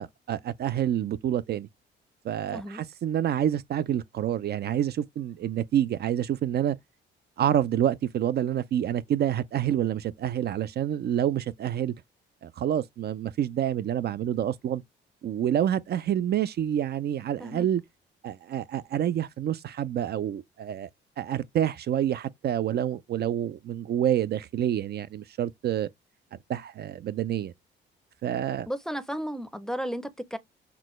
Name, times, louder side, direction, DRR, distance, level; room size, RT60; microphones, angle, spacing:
voice 1, 0.0-1.7 2.2-6.8 7.4-11.9 12.4-14.8 15.2-17.8 18.2-20.9 21.2-25.9 26.5-27.5 28.2-28.7, right 10 dB, 55° right, 0.4 m, -28 dB
voice 2, 28.7-30.4, equal, 5° left, 0.6 m, -34 dB
6.0 x 2.2 x 3.1 m
cardioid pair, 90°, 20 cm